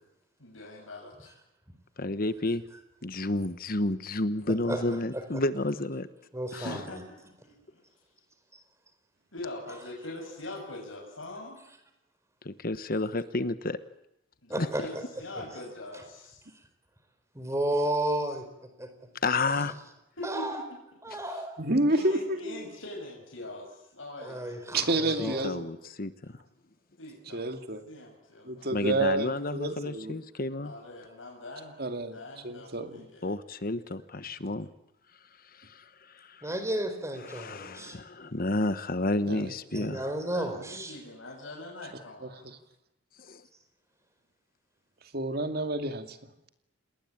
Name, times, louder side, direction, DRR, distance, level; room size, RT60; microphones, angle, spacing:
voice 1, 0.4-1.3 6.5-7.3 7.7-7.8 9.3-11.6 14.4-16.4 20.2-20.7 21.2-21.4 21.9-25.1 27.0-27.5 27.9-28.7 30.6-31.8 32.1-33.4 40.3-42.5, left 2 dB, 85° left, -1 dB, 6.6 m, -43 dB
voice 2, 2.0-2.6 3.0-6.1 6.5-6.6 12.4-13.8 14.6-14.7 19.2-19.7 25.2-26.4 28.7-30.7 33.2-34.7 35.5-36.5 37.3-40.0 43.2-43.4, left 2 dB, 50° left, 12 dB, 1.2 m, -31 dB
voice 3, 6.3-7.0 7.4-7.5 14.5-15.0 15.3-15.4 17.3-18.5 18.8-18.9 20.2-20.6 21.0-21.6 24.2-25.5 36.4-38.0 39.7-41.0, right 1 dB, 15° right, 7 dB, 4.7 m, -32 dB
voice 4, 21.6-22.7 24.7-25.6 27.3-27.8 28.4-30.2 31.8-32.2 32.4-33.1 39.3-39.5 42.2-42.6 45.1-46.2, right 2 dB, 50° right, 7 dB, 2.6 m, -29 dB
29.0 x 20.0 x 8.8 m, 0.88 s
head